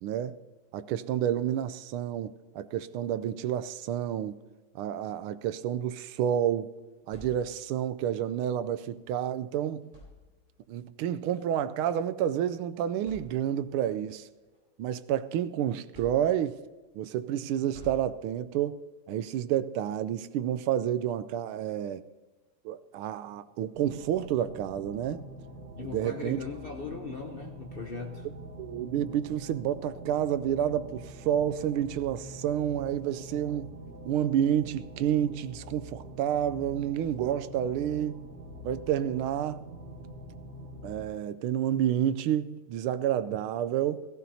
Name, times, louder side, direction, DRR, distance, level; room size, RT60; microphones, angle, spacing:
voice 1, 0.0-0.4 0.7-4.4 4.7-6.7 7.1-9.8 10.7-14.3 14.8-16.6 16.9-18.8 19.1-22.0 22.6-25.2 25.8-26.4 28.6-33.7 34.0-38.3 38.6-39.7 40.8-44.1, right 10 dB, 90° right, 1.5 m, -29 dB
sound 1, 6.8-7.9 9.2-9.3 9.8-10.7 11.8-12.0 12.5-12.6 13.0-13.8 14.3-15.4 15.9-16.7 17.7-18.6, left 1 dB, 20° right, 4.0 m, -51 dB
sound 2, 23.7-41.1, right 1 dB, 60° right, 2.3 m, -45 dB
voice 2, 25.8-28.3, left 4 dB, 70° left, 0.5 m, -39 dB
17.0 x 15.5 x 2.8 m
omnidirectional pair, 2.3 m